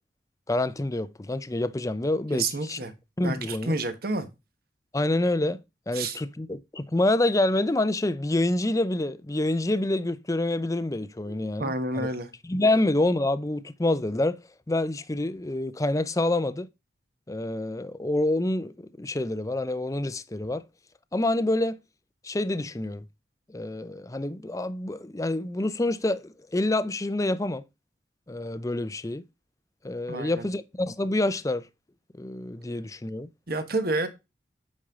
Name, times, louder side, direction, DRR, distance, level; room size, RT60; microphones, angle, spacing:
voice 1, 0.5-2.8 3.2-3.7 4.9-5.6 5.9-12.1 12.5-14.4 14.7-16.7 17.3-20.7 21.1-21.8 22.2-23.1 23.5-27.6 28.3-29.2 29.8-31.7 32.1-33.3, left 2 dB, 20° left, 0.5 m, -27 dB
voice 2, 2.3-2.9 3.2-4.3 5.9-6.2 11.3-12.3 30.1-30.5 33.5-34.1, right 2 dB, 55° right, 1.4 m, -29 dB
8.5 x 5.5 x 3.7 m
head